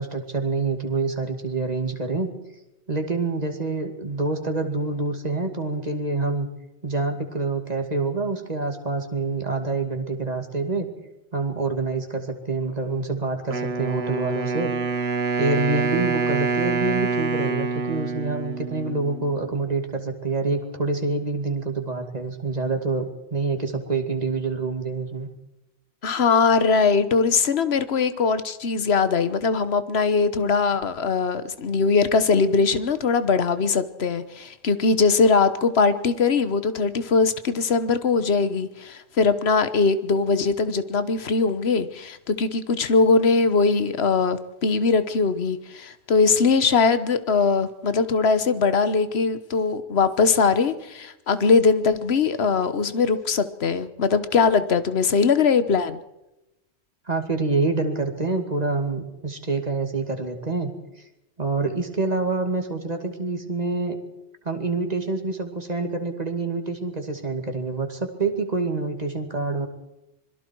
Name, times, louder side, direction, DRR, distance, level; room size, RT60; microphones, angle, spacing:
voice 1, 0.0-2.3 2.9-6.5 6.8-10.9 11.3-14.7 15.4-25.3 57.1-60.7 61.4-64.0 64.4-69.7, right 3 dB, 35° right, 5 dB, 2.6 m, -26 dB
Wind instrument woodwind instrument, 13.5-19.5, right 4 dB, 65° right, 1.6 m, -26 dB
voice 2, 26.0-56.0, left 4 dB, 70° left, 12 dB, 1.4 m, -21 dB
26.0 x 22.0 x 4.7 m, 0.91 s
omnidirectional pair, 1.1 m